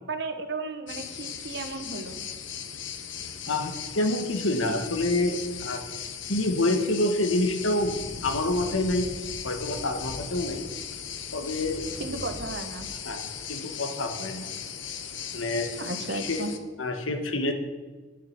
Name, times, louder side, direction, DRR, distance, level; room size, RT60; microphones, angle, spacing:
voice 1, 0.1-2.2 12.0-12.9 15.8-16.5, right 3 dB, 60° right, 7 dB, 1.3 m, -34 dB
sound 1, 0.9-16.6, left 7 dB, 70° left, 1.0 m, -37 dB
voice 2, 3.5-5.8 6.3-8.0 8.2-9.1 9.4-10.6 11.3-11.9 13.0-14.5 15.3-15.7 16.1-16.4 16.8-17.5, left 2 dB, 90° left, 6 dB, 1.6 m, -27 dB
sound 2, 10.7-14.0, equal, 35° left, 3.0 m, -47 dB
11.5 x 10.0 x 6.1 m, 1.4 s
head